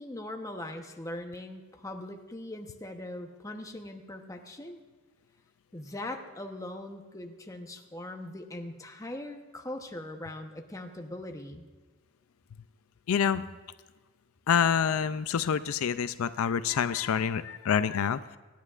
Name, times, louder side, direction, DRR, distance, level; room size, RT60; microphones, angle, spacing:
voice 1, 0.0-4.8 5.7-11.6, left 1 dB, 15° left, 4 dB, 0.9 m, -40 dB
voice 2, 13.1-13.4 14.5-18.4, left 7 dB, 75° left, 13 dB, 0.4 m, -27 dB
26.5 x 10.0 x 2.5 m, 1.3 s
head